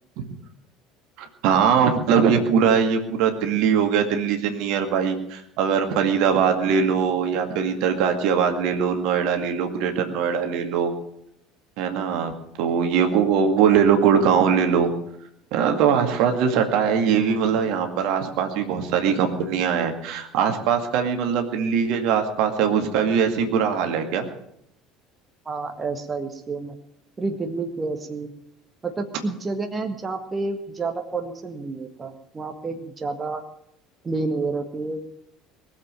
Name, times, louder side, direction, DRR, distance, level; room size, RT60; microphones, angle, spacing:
voice 1, 1.2-10.9 11.8-12.3 12.6-14.9 15.5-24.3, right 7 dB, 60° right, 5 dB, 2.1 m, -21 dB
voice 2, 25.5-26.8 27.2-28.3 28.8-33.4 34.0-35.1, right 3 dB, 25° right, 5 dB, 1.7 m, -29 dB
20.5 x 7.6 x 9.0 m, 0.75 s
figure-of-eight pair, 65°, 0 cm